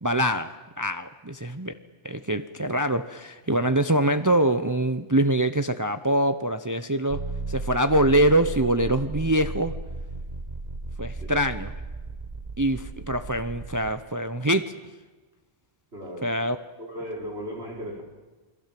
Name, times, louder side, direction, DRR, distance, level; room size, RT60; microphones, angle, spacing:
voice 1, 0.0-1.7 2.0-7.2 7.5-9.7 11.0-11.7 12.6-14.7 16.2-16.6, right 1 dB, 20° right, 9 dB, 0.8 m, -24 dB
sound 1, 7.1-14.0, right 2 dB, 40° right, 1.5 m, -35 dB
voice 2, 15.9-16.3 16.8-18.0, equal, 70° right, -1 dB, 5.6 m, -36 dB
28.5 x 22.5 x 7.7 m, 1.2 s
omnidirectional pair, 1.1 m